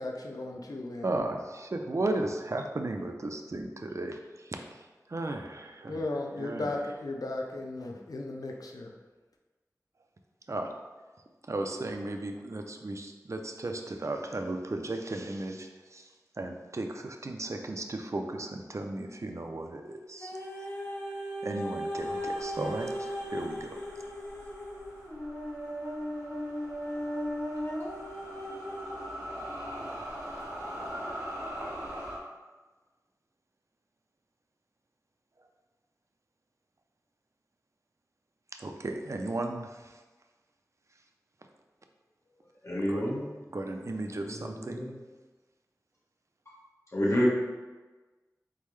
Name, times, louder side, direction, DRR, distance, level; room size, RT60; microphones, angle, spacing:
voice 1, 0.0-1.2 5.9-8.9, left 2 dB, 85° left, 1 dB, 0.5 m, -36 dB
voice 2, 1.0-4.6 5.1-6.0 6.4-6.7 10.5-10.7 11.5-16.1 16.4-20.3 21.4-23.8 38.6-39.7 42.9-43.0 43.5-44.9, right 2 dB, 55° right, 4 dB, 0.5 m, -35 dB
sound 1, 20.2-29.3 30.0-30.1, equal, 30° left, 1.3 m, -37 dB
sound 2, 21.9-32.2, equal, 85° right, 1.3 m, -42 dB
voice 3, 42.6-43.3 44.1-44.9 46.9-47.3, equal, 50° left, -6 dB, 1.3 m, -29 dB
4.0 x 3.7 x 3.2 m, 1.3 s
wide cardioid pair, 55°, 6 cm